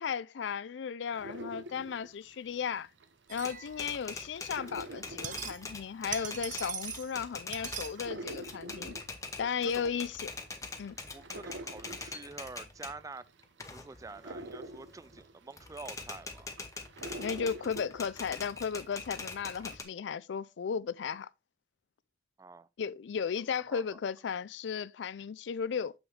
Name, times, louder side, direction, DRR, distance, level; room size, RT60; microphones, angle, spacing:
voice 1, 0.0-2.9 3.3-9.0 9.4-10.3 10.8-11.0 17.2-21.3 22.8-25.9, left 6 dB, 70° left, 0.4 m, -35 dB
sound 1, 1.1-3.4 3.7-18.9 19.2-19.8, right 1 dB, 75° right, 0.8 m, -47 dB
Typewriter, 3.3-13.0 13.4-15.2 15.6-19.8, left 3 dB, 15° left, 0.9 m, -43 dB
sound 2, 3.3-4.1 5.0-5.8 6.1-7.2 7.5-8.0, right 9 dB, 45° right, 0.7 m, -41 dB
voice 2, 9.4-9.9 11.1-13.3 13.7-16.5 22.4-22.7 23.5-24.0, right 3 dB, 20° right, 0.3 m, -47 dB
6.4 x 6.2 x 3.2 m
head